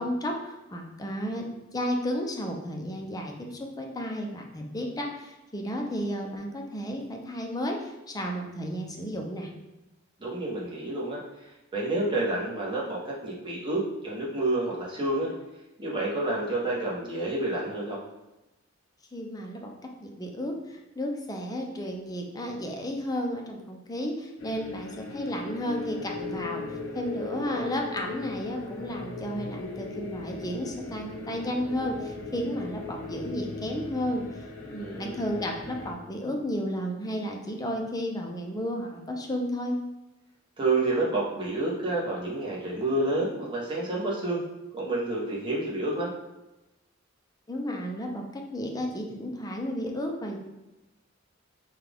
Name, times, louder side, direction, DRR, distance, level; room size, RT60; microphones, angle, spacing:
voice 1, 0.0-9.5 19.1-19.7 20.0-34.4 34.7-39.8 47.5-50.4, equal, 20° left, 1 dB, 0.6 m, -33 dB
voice 2, 10.2-15.3 15.8-18.0 27.3-27.7 34.8-35.2 40.6-44.4 44.7-46.1, right 2 dB, 25° right, -5 dB, 1.1 m, -29 dB
sound 1, 24.4-35.9, left 3 dB, 70° left, 0.8 m, -38 dB
5.7 x 2.4 x 3.5 m, 0.99 s
head